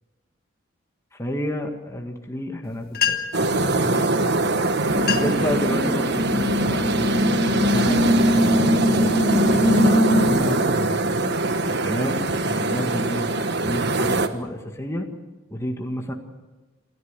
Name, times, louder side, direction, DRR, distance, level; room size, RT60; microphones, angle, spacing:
voice 1, 1.2-4.1 5.1-11.0 11.6-12.2 12.5-13.4 13.6-15.1 15.5-16.1, equal, 15° left, 2 dB, 1.8 m, -30 dB
sound 1, 2.7-2.8 2.9-3.5 4.4-4.5 4.9-5.5 6.0-6.3 7.0-7.2 7.8-9.0, left 7 dB, 50° left, 2.0 m, -28 dB
sound 2, 3.3-14.3, right 2 dB, 55° right, 1.4 m, -23 dB
sound 3, 4.9-10.3, left 1 dB, 5° right, 2.7 m, -21 dB
28.0 x 14.0 x 8.2 m, 1.3 s
head